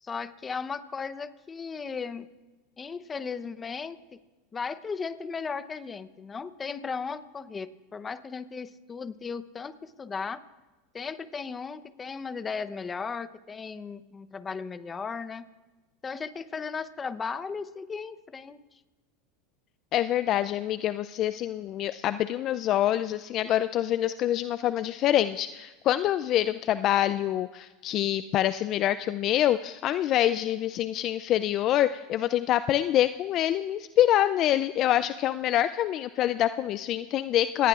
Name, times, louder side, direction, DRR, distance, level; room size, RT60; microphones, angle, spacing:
voice 1, 0.0-2.3 2.8-4.2 4.5-10.4 10.9-15.5 16.0-18.6, left 5 dB, 20° left, 13 dB, 0.8 m, -36 dB
voice 2, 19.9-37.7, left 12 dB, 45° left, 13 dB, 0.4 m, -26 dB
27.5 x 18.5 x 2.4 m, 1.2 s
supercardioid pair, 110°, 0 cm